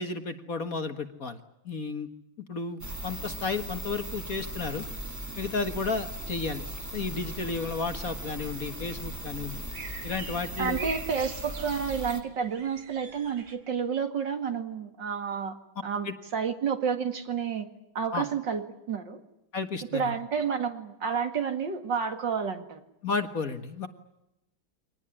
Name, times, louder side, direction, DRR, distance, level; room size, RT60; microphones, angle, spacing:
voice 1, 0.0-1.4 1.7-2.1 2.5-4.9 5.4-6.6 6.9-9.6 10.0-10.9 16.1-16.2 18.1-18.2 19.5-20.1 23.0-23.9, left 4 dB, 45° left, 8 dB, 1.8 m, -32 dB
sound 1, 2.8-12.2, equal, 10° right, 1.7 m, -38 dB
sound 2, 6.9-13.6, right 5 dB, 80° right, 3.5 m, -44 dB
voice 2, 10.6-15.6 15.8-17.7 17.9-19.2 19.9-22.8, right 6 dB, 60° right, 7 dB, 2.7 m, -30 dB
25.0 x 19.0 x 9.9 m, 0.85 s
omnidirectional pair, 2.2 m